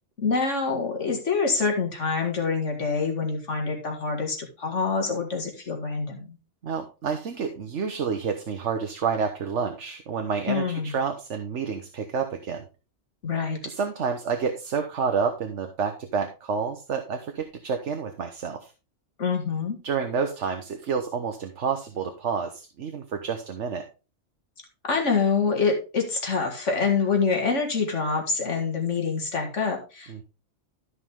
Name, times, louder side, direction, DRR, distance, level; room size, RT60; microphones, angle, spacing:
voice 1, 0.2-6.4 10.5-11.0 13.2-13.6 19.2-19.8 24.8-30.2, left 5 dB, 75° left, 2 dB, 2.3 m, -26 dB
voice 2, 6.6-12.6 13.6-18.7 19.8-23.9 30.1-30.2, right 6 dB, 75° right, 5 dB, 1.3 m, -29 dB
13.0 x 5.6 x 3.6 m, 0.31 s
omnidirectional pair, 1.2 m